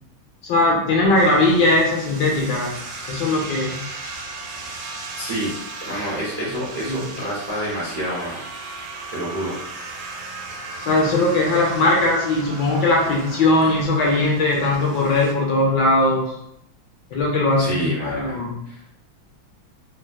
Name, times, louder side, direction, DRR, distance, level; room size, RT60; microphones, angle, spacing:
voice 1, 0.4-2.7 3.1-3.8 6.5-7.1 10.8-16.3 17.1-18.6, left 2 dB, 70° left, -2 dB, 1.2 m, -19 dB
sound 1, 1.1-15.3, right 3 dB, 85° right, 1.5 m, -36 dB
voice 2, 5.2-5.5 5.9-8.4 9.1-9.5 17.6-18.3 18.6-18.8, equal, 40° right, -8 dB, 0.6 m, -28 dB
3.4 x 2.9 x 2.2 m, 0.77 s
omnidirectional pair, 2.2 m